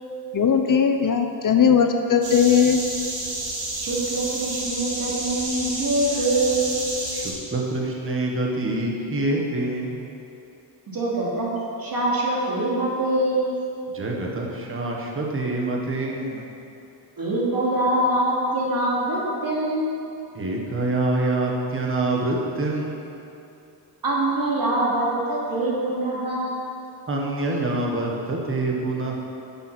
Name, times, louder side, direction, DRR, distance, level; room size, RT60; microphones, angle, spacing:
voice 1, 0.3-2.8, left 7 dB, 45° left, 5 dB, 0.7 m, -18 dB
sound 1, 2.2-7.3, right 2 dB, 80° right, 2.5 m, -30 dB
voice 2, 3.8-6.8 10.9-11.5 11.8-13.5 17.2-20.0 24.0-26.7, right 1 dB, 50° right, -5 dB, 2.7 m, -24 dB
voice 3, 7.1-10.0 13.9-16.4 20.3-23.1 27.1-29.2, right 2 dB, 30° right, -1 dB, 1.4 m, -26 dB
10.5 x 7.2 x 6.1 m, 2.7 s
wide cardioid pair, 140°, 44 cm